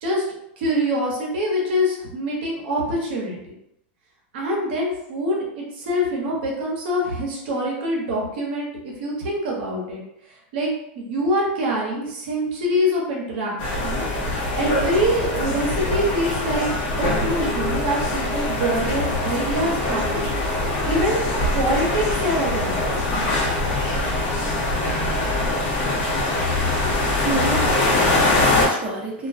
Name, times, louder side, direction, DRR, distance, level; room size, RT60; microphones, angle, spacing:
voice 1, 0.6-3.5 4.3-10.0 10.2-10.7 10.9-14.0 14.6-16.7 17.0-20.3 20.9-23.1, equal, 65° right, -3 dB, 0.8 m, -25 dB
sound 1, 13.6-28.7, left 2 dB, 50° left, 0.8 m, -23 dB
voice 2, 27.1-29.3, right 2 dB, 25° right, -5 dB, 0.8 m, -30 dB
2.2 x 2.2 x 2.5 m, 0.80 s
supercardioid pair, 145°, 6 cm